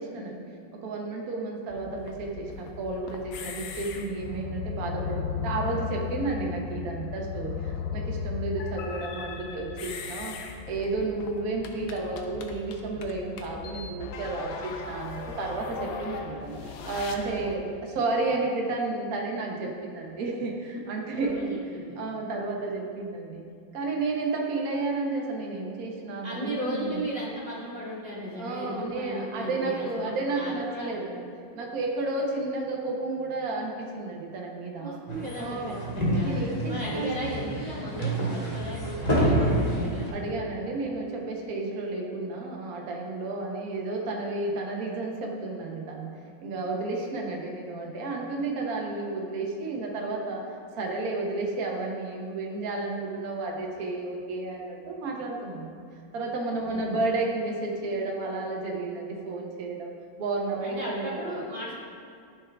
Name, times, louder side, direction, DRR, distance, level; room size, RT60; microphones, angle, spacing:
voice 1, 0.0-10.4 10.6-21.6 22.0-23.4 23.7-27.0 28.4-31.2 31.5-35.0 35.4-36.0 36.2-37.5 40.1-55.8 56.1-59.9 60.2-61.3, right 3 dB, 55° right, -1 dB, 1.4 m, -32 dB
sound 1, 1.7-17.6, left 6 dB, 85° left, 1.5 m, -37 dB
voice 2, 21.1-22.0 26.2-30.9 34.8-36.4 36.7-40.1 56.7-57.0 60.6-61.8, equal, 35° right, -8 dB, 2.5 m, -36 dB
sound 2, 35.1-40.1, right 1 dB, 20° left, 1.7 m, -28 dB
13.0 x 4.7 x 3.5 m, 2.3 s
omnidirectional pair, 2.1 m